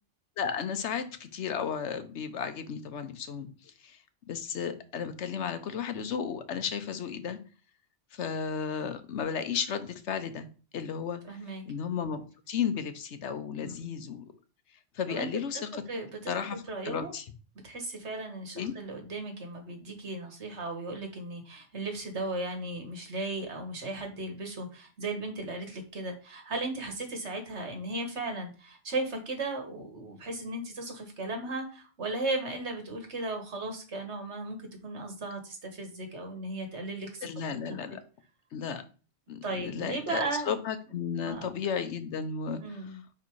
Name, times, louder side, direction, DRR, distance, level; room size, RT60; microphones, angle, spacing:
voice 1, 0.4-4.0 4.3-7.4 8.1-10.5 10.7-11.2 11.7-12.2 12.5-14.2 14.9-15.8 16.3-17.2 18.6-18.7 37.2-38.0 38.5-38.8 39.3-43.0, left 7 dB, 85° left, 10 dB, 1.1 m, -34 dB
voice 2, 11.2-11.6 13.6-13.9 15.1-15.3 15.9-16.3 16.7-17.1 17.6-37.3 37.7-37.8 39.4-40.5 41.2-41.5 42.6-43.0, right 2 dB, 80° right, 4 dB, 1.8 m, -36 dB
5.4 x 4.7 x 4.7 m, 0.36 s
omnidirectional pair, 1.2 m